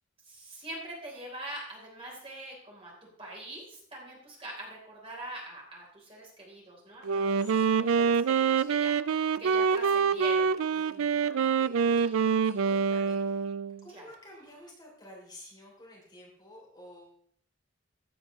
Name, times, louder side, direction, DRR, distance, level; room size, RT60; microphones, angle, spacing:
voice 1, 0.3-2.9 3.2-10.5 12.0-12.1 13.9-14.1, right 1 dB, 25° right, -3 dB, 3.8 m, -43 dB
Wind instrument woodwind instrument, 7.0-13.8, right 6 dB, 90° right, 0.4 m, -26 dB
voice 2, 7.4-8.1 10.7-13.4 13.8-17.2, left 1 dB, 20° left, -3 dB, 3.2 m, -51 dB
15.5 x 8.7 x 3.2 m, 0.62 s
head